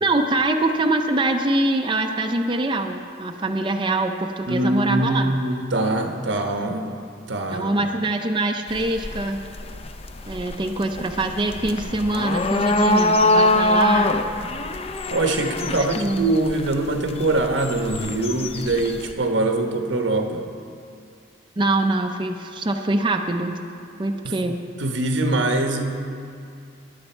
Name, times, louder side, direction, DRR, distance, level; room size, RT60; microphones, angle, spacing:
voice 1, 0.0-5.3 7.5-9.4 10.3-14.1 15.7-16.3 21.6-23.6 24.0-24.6, right 2 dB, 25° right, 4 dB, 0.5 m, -24 dB
voice 2, 4.5-6.9 7.3-7.9 15.1-20.5 24.2-24.4 24.8-25.9, right 2 dB, 85° right, 4 dB, 1.1 m, -23 dB
sound 1, 8.7-19.1, left 1 dB, 30° left, 0.5 m, -24 dB
16.0 x 10.0 x 4.4 m, 2.5 s
head